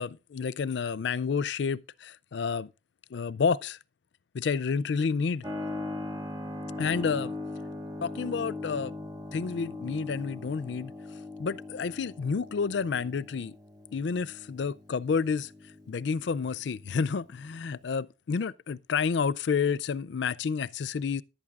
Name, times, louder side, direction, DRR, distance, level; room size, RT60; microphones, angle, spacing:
voice 1, 0.0-2.7 3.1-3.8 4.3-5.4 6.8-7.3 8.0-8.9 9.3-10.9 11.4-13.6 13.9-15.5 15.9-21.2, left 5 dB, 65° left, 0.4 m, -30 dB
Keyboard (musical), 5.4-17.8, left 2 dB, 20° right, 1.2 m, -40 dB
14.5 x 11.0 x 2.4 m
head